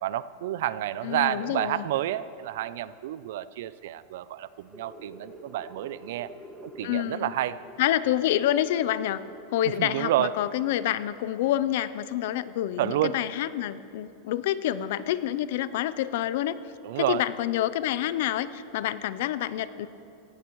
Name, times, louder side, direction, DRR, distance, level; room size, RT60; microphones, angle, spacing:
voice 1, 0.0-6.3 6.6-7.6 9.8-10.3 12.8-13.1 16.8-17.2, right 13 dB, 65° right, 16 dB, 0.4 m, -29 dB
voice 2, 1.0-1.9 6.8-7.3 7.8-9.2 9.5-16.6 17.0-19.9, left 12 dB, 60° left, 16 dB, 0.5 m, -27 dB
sound 1, 4.5-11.7, right 1 dB, 5° right, 1.5 m, -49 dB
17.0 x 14.5 x 3.1 m, 2.6 s
supercardioid pair, 165°, 0 cm